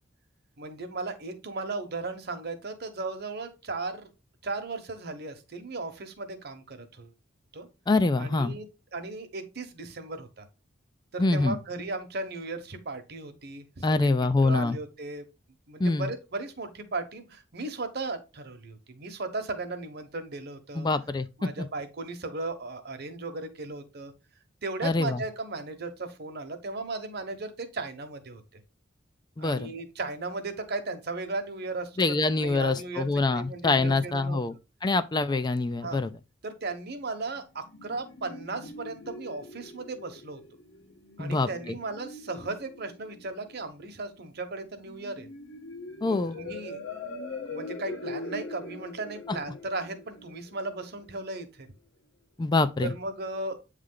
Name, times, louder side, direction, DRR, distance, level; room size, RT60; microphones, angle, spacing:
voice 1, 0.6-4.1 4.4-7.1 7.5-7.7 8.2-10.5 11.1-14.1 14.4-15.2 15.7-20.9 21.4-24.1 24.6-28.6 29.4-34.4 35.8-36.0 36.4-40.4 41.2-45.3 46.0-46.8 47.5-51.7 52.8-53.6, right 3 dB, 55° right, 1.0 m, -36 dB
voice 2, 7.9-8.5 11.2-11.6 13.8-14.8 15.8-16.0 20.8-21.5 24.8-25.2 29.4-29.7 32.0-34.5 34.8-36.1 41.2-41.5 46.0-46.3 52.4-52.9, left 3 dB, 20° left, 0.4 m, -25 dB
sound 1, 37.3-51.3, left 2 dB, 70° left, 1.4 m, -43 dB
8.4 x 3.3 x 3.8 m
head